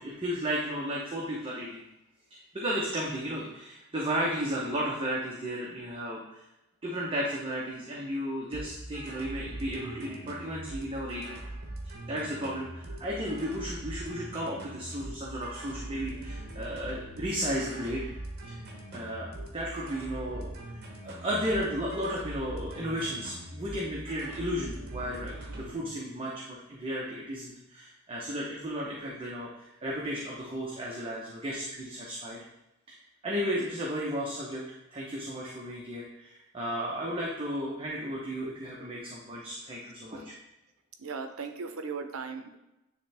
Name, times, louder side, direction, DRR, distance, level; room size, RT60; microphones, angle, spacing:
voice 1, 0.0-1.8 2.3-6.4 6.8-11.4 11.8-18.1 18.4-18.6 18.9-32.4 32.9-33.0 33.2-34.6 34.9-40.3, equal, 25° right, -4 dB, 0.9 m, -34 dB
sound 1, 8.5-25.8, right 1 dB, 50° right, 1.2 m, -42 dB
voice 2, 41.0-42.6, right 5 dB, 75° right, 7 dB, 0.7 m, -37 dB
9.7 x 3.3 x 3.4 m, 0.94 s
head